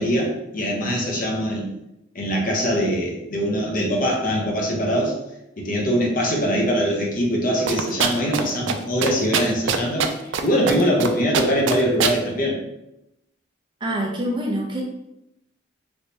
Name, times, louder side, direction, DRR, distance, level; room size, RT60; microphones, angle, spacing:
voice 1, 0.0-1.7 2.1-5.1 5.6-10.1 10.4-12.6, equal, 45° left, -2 dB, 0.8 m, -22 dB
sound 1, 7.7-8.4 8.7-8.8 9.0-10.4 10.7-11.1 11.3-12.2, right 7 dB, 70° right, 0.3 m, -22 dB
voice 2, 13.8-14.8, right 1 dB, 25° right, -2 dB, 0.6 m, -25 dB
3.3 x 3.1 x 2.7 m, 0.87 s
head